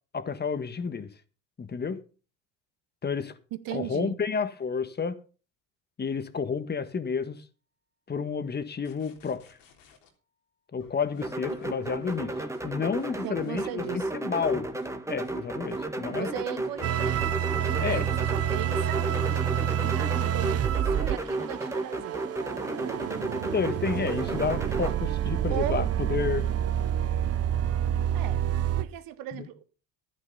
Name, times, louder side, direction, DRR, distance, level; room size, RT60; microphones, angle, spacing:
voice 1, 0.1-1.1 1.6-2.0 3.0-3.3 3.7-5.2 6.0-7.4 8.1-9.6 10.7-12.3 12.6-13.8 14.1-14.7 15.1-16.3 17.8-18.1 23.5-26.5 29.3-29.5, left 5 dB, 25° left, 1.6 m, -30 dB
voice 2, 3.5-4.2 13.2-14.1 16.1-19.1 19.8-22.3 24.8-24.9 25.5-25.9 28.1-28.4 28.8-29.6, right 13 dB, 65° right, 1.6 m, -37 dB
sound 1, 8.8-10.1 10.8-22.0 23.8-24.2, left 8 dB, 85° left, 3.6 m, -54 dB
sound 2, 11.2-24.9, right 2 dB, 10° right, 1.8 m, -34 dB
sound 3, 16.8-28.8, right 10 dB, 40° right, 1.0 m, -28 dB
11.5 x 10.5 x 5.5 m
supercardioid pair, 90°, 37 cm